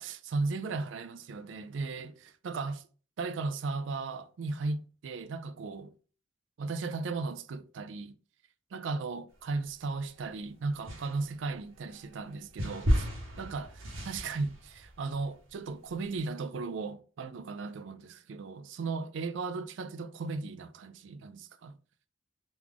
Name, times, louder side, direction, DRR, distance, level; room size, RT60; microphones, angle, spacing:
voice 1, 0.0-2.8 3.2-5.9 6.6-8.2 8.7-13.1 13.4-13.7 14.1-21.8, right 3 dB, 65° right, 0.4 m, -36 dB
sound 1, 9.5-10.3 10.8-16.2, equal, 90° right, 1.1 m, -34 dB
3.0 x 2.4 x 3.5 m
head